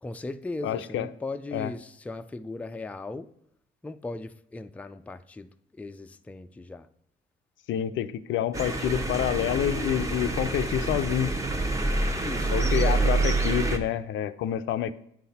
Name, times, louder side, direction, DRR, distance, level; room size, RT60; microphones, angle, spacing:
voice 1, 0.0-3.3 3.8-6.9 12.2-13.2, left 2 dB, 5° left, 0.3 m, -37 dB
voice 2, 0.6-1.1 1.5-1.7 7.7-11.3 12.5-14.9, left 10 dB, 75° left, 0.5 m, -28 dB
sound 1, 8.5-13.8, right 2 dB, 15° right, 0.8 m, -27 dB
8.4 x 4.0 x 4.1 m
cardioid pair, 90°, 20 cm